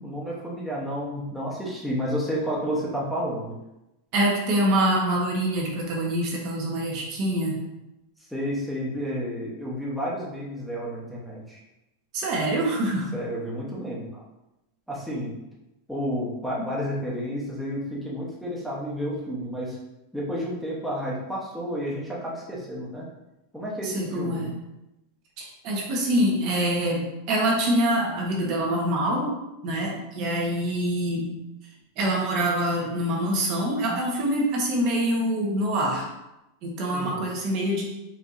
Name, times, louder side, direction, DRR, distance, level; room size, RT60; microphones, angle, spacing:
voice 1, 0.0-3.6 8.2-11.6 13.1-14.2 14.9-15.4 15.9-19.8 20.1-23.1 23.5-24.5 36.9-37.2, equal, ahead, -6 dB, 0.8 m, -31 dB
voice 2, 4.1-7.6 12.1-13.2 23.8-24.5 25.4-29.3 29.6-31.4 32.0-36.1 36.6-37.8, right 1 dB, 45° right, -1 dB, 0.8 m, -25 dB
4.3 x 2.7 x 2.4 m, 0.93 s
supercardioid pair, 145°, 0 cm